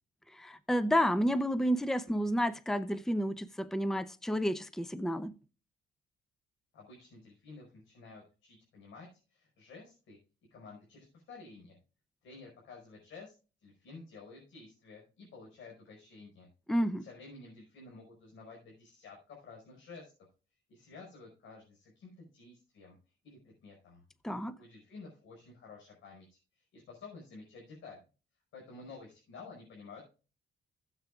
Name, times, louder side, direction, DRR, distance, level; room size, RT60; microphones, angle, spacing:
voice 1, 0.3-5.3 16.7-17.1 24.2-24.5, equal, ahead, 0.7 m, -30 dB
voice 2, 6.7-10.2 10.5-11.8 12.2-13.3 13.6-16.5 17.0-20.1 20.7-23.0 23.2-24.0 24.6-28.0 28.5-30.0, left 4 dB, 80° left, 5.5 m, -52 dB
16.0 x 8.0 x 2.4 m
cardioid pair, 90°, 20 cm